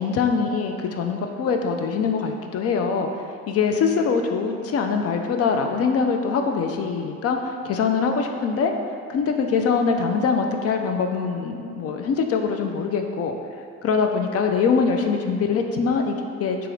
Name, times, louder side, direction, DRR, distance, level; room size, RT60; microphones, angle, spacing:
voice 1, 0.0-3.1 3.5-8.7 9.1-13.4 13.8-16.6, left 5 dB, 50° left, 4 dB, 0.4 m, -23 dB
3.5 x 3.0 x 3.1 m, 2.3 s
cardioid pair, 90°, 30 cm